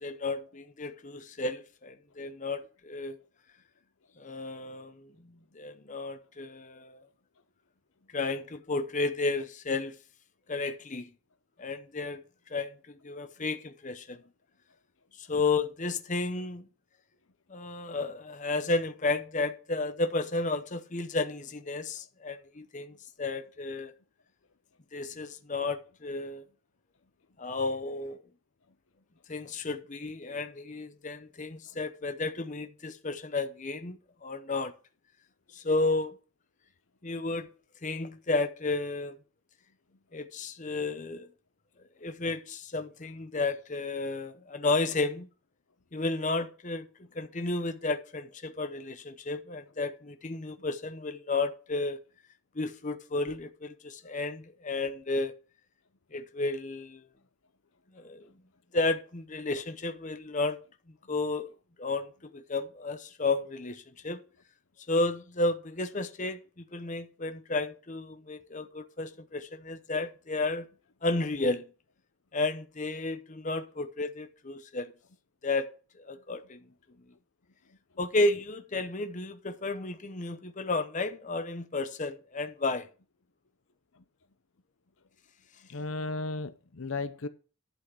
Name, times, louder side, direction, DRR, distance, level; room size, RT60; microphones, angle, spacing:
voice 1, 0.0-3.2 4.2-5.1 5.5-7.0 8.1-9.9 10.5-11.1 11.6-12.2 12.5-14.2 15.2-16.7 17.5-23.9 24.9-26.4 27.4-28.2 29.3-34.7 35.5-36.1 37.0-37.5 37.8-39.2 40.1-41.3 42.0-45.3 45.9-46.9 47.1-52.0 52.6-55.3 56.1-57.1 57.9-58.3 58.7-60.6 61.1-61.5 61.8-64.2 64.9-70.7 71.0-71.7 72.3-74.9 75.4-75.7 76.0-76.6 78.0-82.9, left 3 dB, 35° left, 0.8 m, -32 dB
voice 2, 85.7-87.3, left 3 dB, 70° left, 0.7 m, -35 dB
11.0 x 6.3 x 4.8 m
head